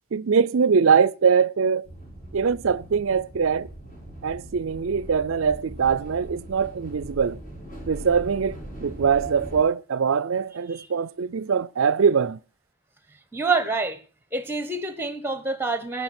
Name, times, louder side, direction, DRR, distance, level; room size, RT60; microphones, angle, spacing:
voice 1, 0.1-1.9 2.3-3.7 4.2-7.4 7.9-12.4, right 6 dB, 65° right, 0.5 m, -22 dB
sound 1, 1.8-9.6, right 1 dB, 40° left, 5.3 m, -40 dB
voice 2, 13.3-14.0 14.3-16.0, right 3 dB, 10° right, 1.2 m, -27 dB
15.0 x 9.3 x 4.3 m
head